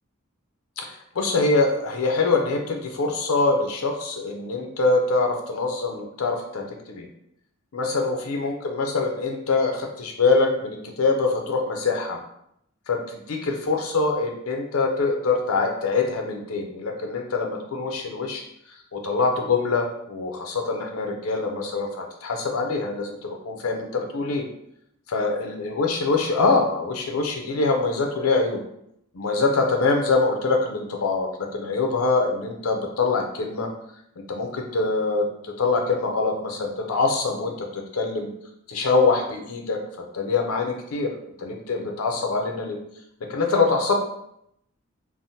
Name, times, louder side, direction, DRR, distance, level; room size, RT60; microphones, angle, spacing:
voice 1, 0.8-7.1 7.7-12.2 12.9-18.4 18.9-24.5 25.1-28.6 29.1-33.7 34.3-38.3 38.7-39.8 40.1-42.8 43.2-43.9, left 3 dB, 85° left, 3 dB, 0.6 m, -24 dB
3.3 x 2.0 x 2.7 m, 0.75 s
head